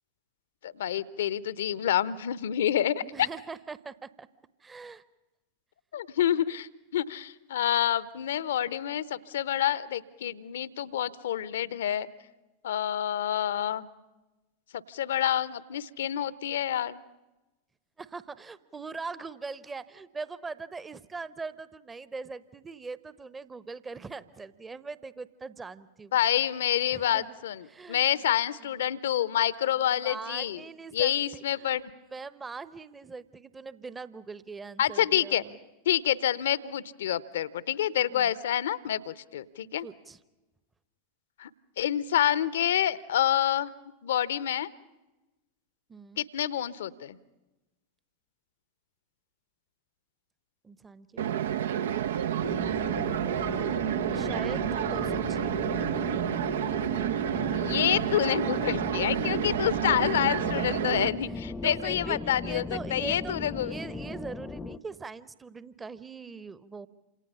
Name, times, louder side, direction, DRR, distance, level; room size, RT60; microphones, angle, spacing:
voice 1, 0.6-3.3 5.9-12.1 12.6-13.9 14.7-17.0 26.1-30.6 30.9-31.8 34.8-35.4 35.8-39.9 41.4-41.5 41.8-43.7 44.0-44.7 46.2-47.2 57.5-62.6 62.9-63.7, left 11 dB, 60° left, 18 dB, 0.9 m, -28 dB
voice 2, 3.0-4.3 4.6-5.0 18.0-26.2 26.9-27.4 27.7-28.2 28.7-28.9 29.9-31.7 32.1-35.5 38.0-38.3 39.8-40.2 45.9-46.3 50.6-51.9 53.3-55.5 61.6-62.2 62.4-63.4 63.6-66.9, right 4 dB, 15° right, 16 dB, 1.0 m, -41 dB
sound 1, 51.2-61.1, right 10 dB, 60° right, 0.8 m, -29 dB
sound 2, 52.4-64.8, left 3 dB, 15° left, 0.8 m, -38 dB
28.5 x 27.0 x 5.6 m, 1.1 s
figure-of-eight pair, 90°, 0 cm